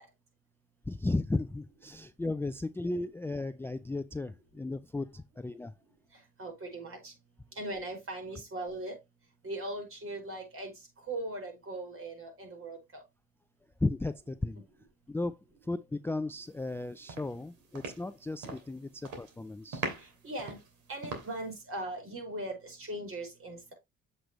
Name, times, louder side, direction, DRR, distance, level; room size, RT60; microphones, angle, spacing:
voice 1, 0.9-5.7 13.8-14.6 15.1-15.4 15.6-19.9, left 2 dB, 10° left, 0.4 m, -35 dB
voice 2, 6.4-7.1 7.6-9.0 9.4-10.7 11.1-13.0 20.2-20.6 20.9-23.6, right 1 dB, 45° right, 5.3 m, -39 dB
sound 1, 16.6-16.8 17.1-18.7 19.0-19.4 19.7-21.6, right 3 dB, 80° right, 2.9 m, -41 dB
7.8 x 6.6 x 3.0 m
cardioid pair, 90°, 30 cm